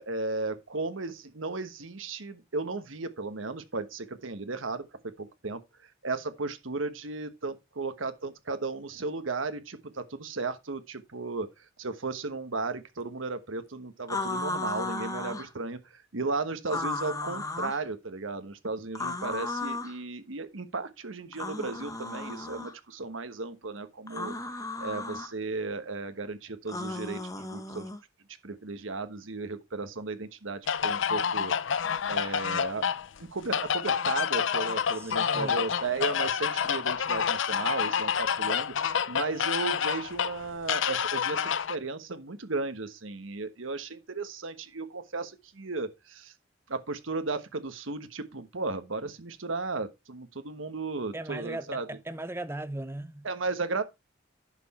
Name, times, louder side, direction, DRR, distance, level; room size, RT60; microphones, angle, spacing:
voice 1, 0.0-5.6 6.0-11.5 11.8-24.3 24.8-27.9 28.4-31.5 32.1-32.8 33.3-46.3 46.7-51.9 53.2-53.8, right 3 dB, 85° right, 1.3 m, -35 dB
sound 1, 14.1-15.5 16.7-17.8 18.9-20.0 21.3-22.7 24.1-25.3 26.7-28.0, left 2 dB, 20° left, 1.2 m, -35 dB
sound 2, 30.7-41.7, left 7 dB, 70° left, 0.6 m, -28 dB
voice 2, 35.0-35.7 51.1-53.3, right 1 dB, 15° right, 0.8 m, -38 dB
10.5 x 5.9 x 4.2 m
head